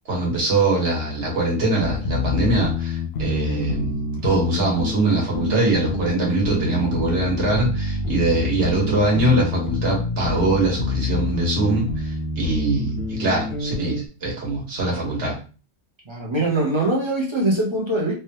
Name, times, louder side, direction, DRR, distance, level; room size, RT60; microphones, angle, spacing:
voice 1, 0.1-15.4, right 2 dB, 60° right, -2 dB, 1.5 m, -22 dB
sound 1, 1.8-14.0, left 3 dB, 65° left, 0.7 m, -27 dB
voice 2, 16.1-18.1, right 1 dB, 30° right, -4 dB, 0.5 m, -22 dB
3.3 x 2.2 x 2.7 m, 0.36 s
omnidirectional pair, 1.3 m